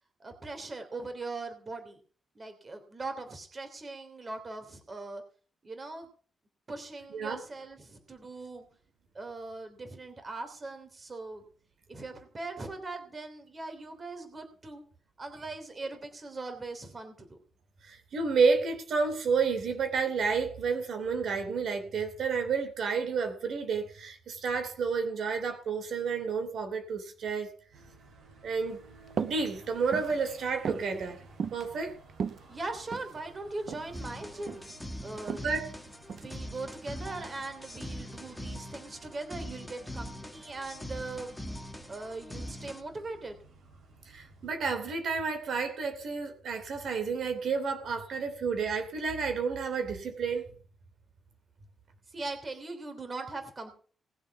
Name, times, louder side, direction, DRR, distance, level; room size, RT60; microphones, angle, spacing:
voice 1, 0.2-2.0 2.3-5.2 5.6-6.1 6.7-8.7 9.1-11.4 11.9-14.8 15.2-17.4 32.5-34.7 35.0-35.4 36.1-41.3 41.9-43.4 52.1-53.7, right 3 dB, 25° right, 7 dB, 3.2 m, -40 dB
voice 2, 17.8-27.5 28.4-28.8 29.2-31.2 31.5-32.0 35.4-35.7 44.1-50.6, right 5 dB, 65° right, 6 dB, 3.0 m, -30 dB
sound 1, 27.7-44.6, right 3 dB, 80° right, 7.1 m, -56 dB
sound 2, 29.1-29.4 29.8-30.2 30.6-30.9 31.4-31.7 32.1-33.1 33.7-33.9 34.2-34.7 35.3-35.5 36.1-36.4, right 6 dB, 50° right, 0.8 m, -35 dB
sound 3, 33.9-42.8, equal, 5° left, 1.6 m, -42 dB
20.0 x 7.6 x 5.8 m, 0.42 s
wide cardioid pair, 150°, 0 cm